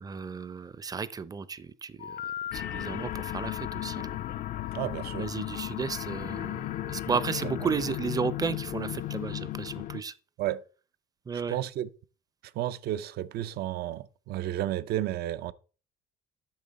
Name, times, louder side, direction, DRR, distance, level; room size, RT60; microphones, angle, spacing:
voice 1, 0.0-2.1 2.5-4.2 5.1-10.1 11.3-11.6, right 5 dB, 20° right, 0.5 m, -33 dB
Telephone, 2.0-2.9 4.0-6.1 6.9-8.4, left 10 dB, 70° left, 0.8 m, -42 dB
sound 1, 2.5-10.0, left 14 dB, 55° left, 0.4 m, -35 dB
voice 2, 4.7-5.3 10.4-10.6 11.5-11.9 12.5-15.5, right 13 dB, 70° right, 0.5 m, -32 dB
8.7 x 6.0 x 4.0 m
cardioid pair, 110°, 17 cm